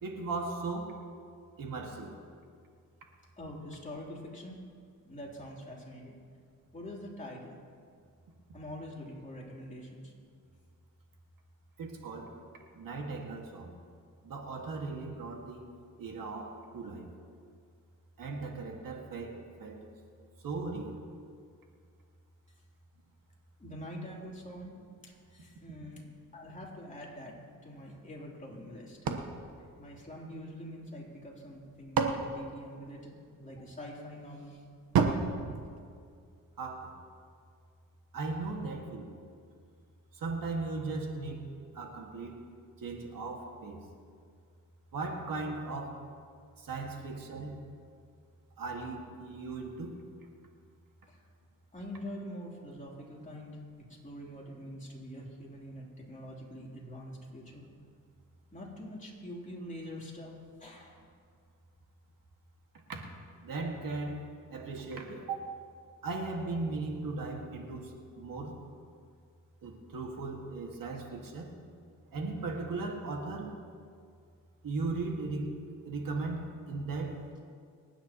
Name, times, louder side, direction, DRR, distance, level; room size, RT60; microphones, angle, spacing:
voice 1, 0.0-0.9 1.6-2.1 11.8-12.3 12.8-13.7 14.2-15.7 16.0-17.1 18.2-19.8 20.4-21.0 36.6-36.9 38.1-39.1 40.2-41.4 41.7-42.4 42.8-43.8 44.9-46.0 46.6-47.6 48.6-49.9 62.9-63.0 63.4-65.5 66.0-67.9 68.2-68.6 69.6-71.5 72.1-73.5 74.6-75.5 75.8-77.4, right 3 dB, 70° right, 1 dB, 2.0 m, -37 dB
voice 2, 3.4-4.6 5.0-6.2 6.7-7.6 8.5-10.1 23.6-24.7 25.0-26.0 26.3-27.4 27.6-29.0 29.6-34.6 51.1-51.2 51.7-57.6 58.5-60.3 60.6-61.0, equal, 20° left, -4 dB, 3.4 m, -45 dB
sound 1, 29.1-30.6 31.5-33.4 34.9-36.5, right 5 dB, 85° right, 1.3 m, -33 dB
28.0 x 9.9 x 3.0 m, 2.2 s
cardioid pair, 90°, 35 cm